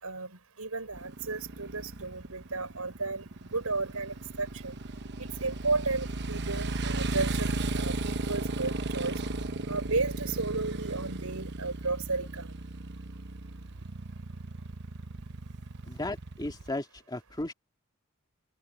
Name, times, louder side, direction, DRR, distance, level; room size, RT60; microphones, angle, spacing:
voice 1, 0.0-3.3 3.5-4.8 5.2-7.5 7.7-9.2 9.7-12.5, right 3 dB, 85° right, 4.6 m, -33 dB
Motorcycle, 0.9-16.7, right 2 dB, 55° right, 0.9 m, -36 dB
voice 2, 15.9-17.5, left 2 dB, 20° left, 2.0 m, -35 dB
open air
head